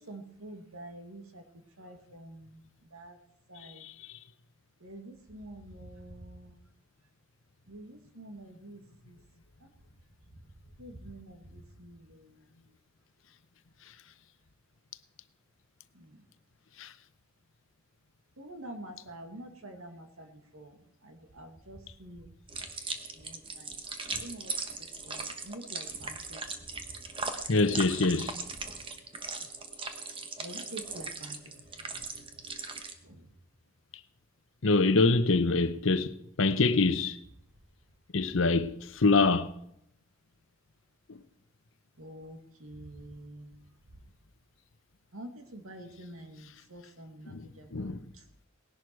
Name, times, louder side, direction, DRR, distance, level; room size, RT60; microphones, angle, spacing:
voice 1, 0.1-1.4 1.8-2.6 2.9-3.2 3.5-3.8 4.8-6.5 7.7-8.8 9.1-9.2 10.8-12.3 16.0-16.1 18.4-20.8 21.0-22.3 23.2-23.7 24.1-24.5 25.0-26.4 30.4-31.4 33.0-33.2 42.0-43.5 45.1-47.9, right 1 dB, 80° right, 2.2 m, -47 dB
sound 1, 22.5-32.9, right 4 dB, 25° right, 1.2 m, -39 dB
voice 2, 27.5-28.3 34.6-37.2 38.1-39.5 47.3-47.4 47.7-48.0, left 3 dB, 65° left, 0.9 m, -25 dB
19.0 x 11.0 x 4.6 m
head